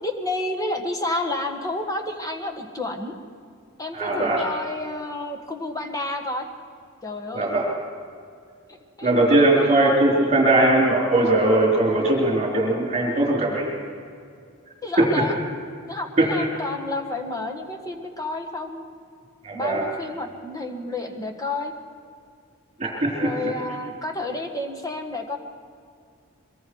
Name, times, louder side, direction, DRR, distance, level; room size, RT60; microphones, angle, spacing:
voice 1, 0.0-3.2 3.8-6.5 7.0-7.5 8.7-9.1 14.8-15.4 15.8-18.8 19.5-21.7 23.2-25.4, left 2 dB, 15° left, 4 dB, 1.7 m, -30 dB
voice 2, 3.9-4.4 7.3-7.6 9.0-13.7 15.0-15.1 16.2-16.5 19.4-19.8 22.8-23.5, right 2 dB, 30° right, -3 dB, 4.2 m, -20 dB
23.5 x 23.0 x 4.8 m, 2.4 s
head